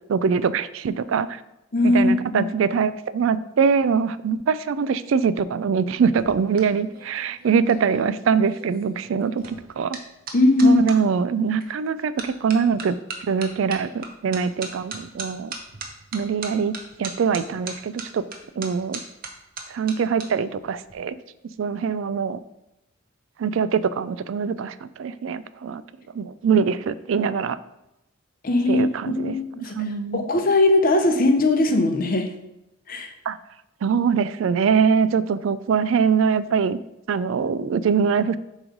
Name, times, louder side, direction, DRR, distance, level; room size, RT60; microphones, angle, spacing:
voice 1, 0.1-1.4 1.8-10.0 10.6-13.0 13.3-15.5 16.1-16.7 17.0-18.2 18.6-19.0 19.7-21.2 21.6-22.4 23.4-25.8 26.1-27.6 28.7-30.3 33.3-33.4 33.8-36.8 37.1-38.4, right 6 dB, 70° right, 15 dB, 0.3 m, -23 dB
voice 2, 1.7-2.5 10.3-10.8 28.4-29.8 30.1-32.3 32.9-33.1, left 2 dB, 45° left, 6 dB, 0.6 m, -19 dB
sound 1, 6.0-11.0 11.6-11.9 12.2-20.3 20.5-20.9, right 4 dB, 45° right, 0.9 m, -38 dB
7.2 x 3.1 x 5.2 m, 0.91 s
head